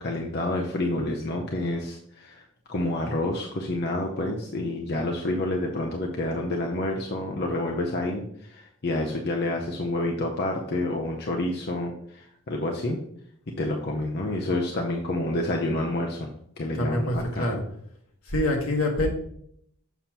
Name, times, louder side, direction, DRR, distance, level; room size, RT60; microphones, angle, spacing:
voice 1, 0.0-13.0 13.6-16.3 16.6-17.5, left 1 dB, 50° left, 0 dB, 0.7 m, -28 dB
voice 2, 16.7-17.6 18.3-19.1, left 1 dB, 75° left, 1 dB, 1.4 m, -25 dB
7.0 x 5.7 x 2.9 m, 0.68 s
head